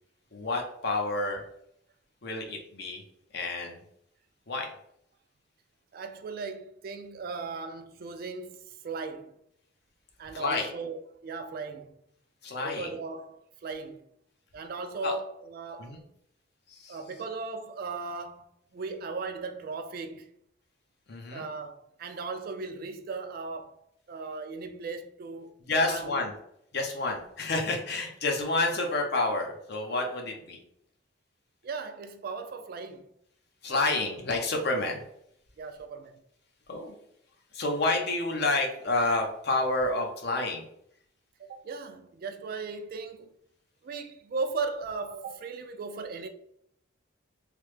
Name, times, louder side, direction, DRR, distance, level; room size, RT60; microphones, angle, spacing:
voice 1, 0.3-1.4 2.2-3.0 3.3-3.8 4.5-4.7 10.3-10.7 12.4-12.9 15.0-15.1 15.8-16.0 16.7-17.0 21.1-21.4 25.7-26.3 26.7-30.6 33.6-35.0 36.7-37.0 37.5-40.6, left 2 dB, 55° left, 0.6 m, -29 dB
voice 2, 5.9-9.4 10.2-11.9 12.6-14.0 14.5-16.0 16.9-18.5 18.7-20.3 21.3-23.8 24.1-25.5 25.8-26.2 31.6-33.1 33.7-33.8 34.8-34.9 35.6-36.2 41.4-43.3 43.8-46.3, right 4 dB, 50° right, 0.3 m, -37 dB
3.2 x 2.0 x 3.2 m
head